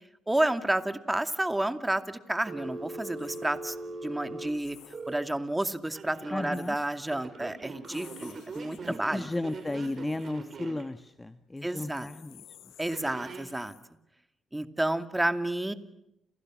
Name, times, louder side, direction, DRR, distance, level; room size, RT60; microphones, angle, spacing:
voice 1, 0.3-3.8 4.0-4.8 5.1-9.3 11.6-12.1 12.8-13.8 14.5-15.7, right 1 dB, 10° right, 9 dB, 2.4 m, -30 dB
Telephone, 2.5-5.2 5.9-6.6 7.1-10.8 12.9-13.5, right 3 dB, 45° right, 7.2 m, -41 dB
sound 1, 3.1-3.5 4.6-5.2 6.4-6.9 7.8-10.3 11.6-13.8, left 11 dB, 85° left, 6.3 m, -54 dB
voice 2, 6.3-6.7 9.1-12.4, left 2 dB, 15° left, 9 dB, 1.4 m, -34 dB
30.0 x 29.5 x 6.3 m, 0.82 s
cardioid pair, 90°, 0 cm